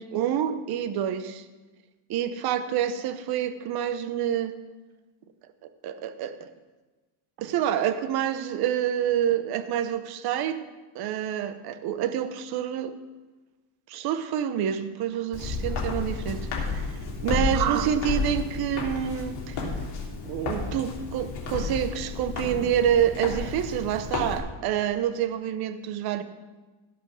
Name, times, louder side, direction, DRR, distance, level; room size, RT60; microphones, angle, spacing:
voice 1, 0.0-1.4 2.1-4.5 5.6-6.5 7.4-10.6 10.9-12.9 13.9-16.9 17.2-19.7 20.2-26.2, right 10 dB, 50° right, 11 dB, 0.8 m, -27 dB
Walk footsteps, 15.3-24.4, left 4 dB, 50° left, 3.3 m, -32 dB
16.5 x 5.8 x 6.3 m, 1.2 s
cardioid pair, 170°, 50 cm